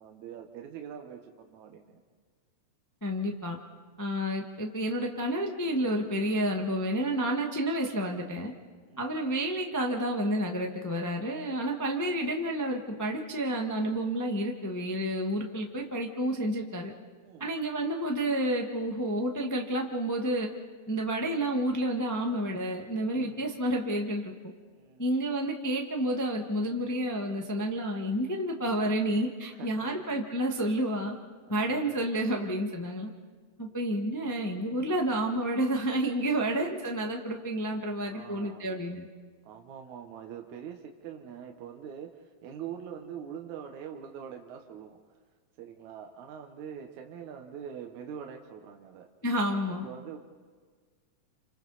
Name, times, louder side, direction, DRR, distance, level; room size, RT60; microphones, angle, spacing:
voice 1, 0.0-2.0 8.8-9.2 17.2-17.5 23.1-23.5 24.7-25.1 29.5-29.9 31.5-32.0 33.6-34.0 36.3-36.5 38.1-38.8 39.4-45.0 45.6-49.1 49.7-50.2, right 8 dB, 80° right, 3 dB, 2.5 m, -44 dB
voice 2, 3.0-3.6 4.0-8.5 9.0-16.9 17.4-20.5 20.9-24.3 25.0-31.2 31.5-33.1 33.6-39.1 49.2-49.9, right 1 dB, 20° left, 1 dB, 0.5 m, -30 dB
29.0 x 26.5 x 4.1 m, 1.5 s
omnidirectional pair, 3.3 m